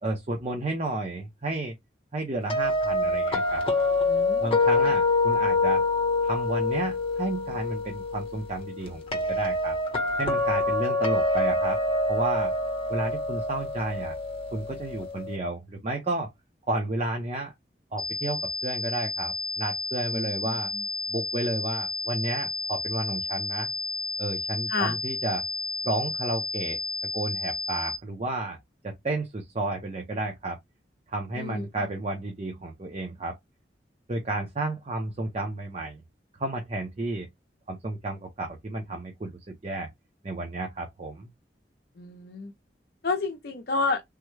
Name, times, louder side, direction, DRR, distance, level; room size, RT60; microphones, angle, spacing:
voice 1, 0.0-1.7 2.1-3.6 4.4-5.8 6.2-9.8 10.2-11.8 12.1-12.5 12.9-14.2 14.5-16.3 16.7-17.5 17.9-20.7 21.1-23.7 24.2-25.4 25.8-26.8 27.1-28.6 28.8-30.6 31.1-33.4 34.1-36.0 36.4-37.3 37.7-39.9 40.2-41.3, right 2 dB, 35° right, 0.6 m, -32 dB
sound 1, 2.5-15.4, left 2 dB, 30° left, 0.8 m, -26 dB
voice 2, 4.1-4.7 20.1-20.8 24.7-25.0 31.3-32.0 42.0-42.5 43.0-44.0, left 3 dB, 55° left, 0.6 m, -31 dB
sound 2, 18.0-28.0, left 3 dB, ahead, 0.3 m, -32 dB
3.5 x 2.1 x 3.1 m
head